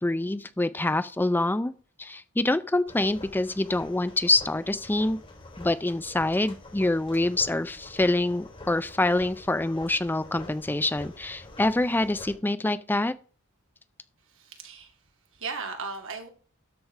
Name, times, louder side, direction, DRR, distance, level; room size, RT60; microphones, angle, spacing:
voice 1, 0.0-1.7 2.0-5.2 5.6-13.1, left 2 dB, 10° left, 0.4 m, -26 dB
sound 1, 2.9-12.4, left 2 dB, 25° left, 3.6 m, -46 dB
voice 2, 14.3-15.0 15.3-16.3, right 4 dB, 65° right, 2.2 m, -37 dB
13.0 x 4.8 x 4.7 m
head